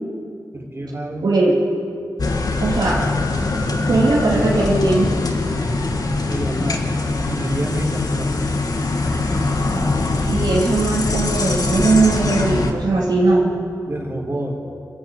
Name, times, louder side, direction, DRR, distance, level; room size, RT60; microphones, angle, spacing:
voice 1, 0.5-1.3 6.1-8.4 13.9-14.7, right 1 dB, 35° right, 1 dB, 4.5 m, -28 dB
voice 2, 1.2-1.6 2.6-3.1 3.9-5.1 10.3-13.5, right 3 dB, 80° right, -6 dB, 2.9 m, -18 dB
sound 1, 2.2-12.7, left 3 dB, 60° left, 2.0 m, -22 dB
27.5 x 11.5 x 9.2 m, 2.5 s
wide cardioid pair, 70°, 7 cm